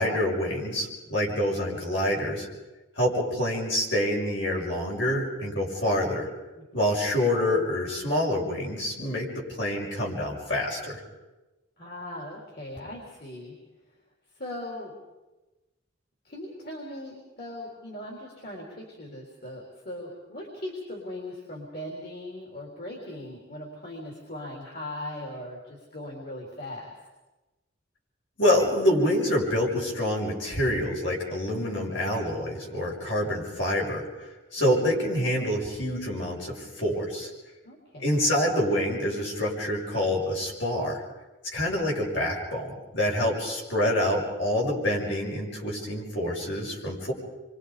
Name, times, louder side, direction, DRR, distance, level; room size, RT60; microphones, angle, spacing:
voice 1, 0.0-2.5 3.0-6.3 6.7-11.0 28.4-37.3 38.0-41.0 41.5-47.1, left 1 dB, 70° left, -2 dB, 6.2 m, -27 dB
voice 2, 11.8-13.5 14.4-15.0 16.2-26.9 31.5-31.7 34.6-34.7 37.6-38.2, left 1 dB, 55° left, -1 dB, 4.0 m, -39 dB
28.5 x 24.5 x 5.2 m, 1.1 s
head